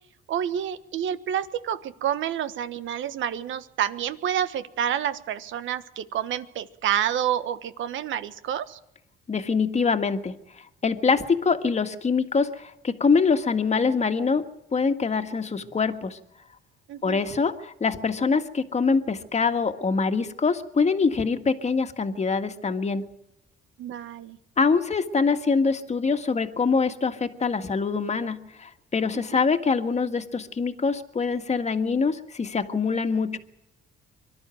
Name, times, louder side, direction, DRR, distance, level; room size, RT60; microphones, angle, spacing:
voice 1, 0.3-8.8 16.9-17.2 23.8-24.4 29.1-29.4, right 10 dB, 80° right, 12 dB, 1.4 m, -29 dB
voice 2, 9.3-10.3 10.8-14.4 14.7-16.2 17.0-23.1 24.6-33.4, left 5 dB, 35° left, 8 dB, 1.8 m, -24 dB
24.0 x 12.0 x 9.2 m, 0.84 s
cardioid pair, 90°, 20 cm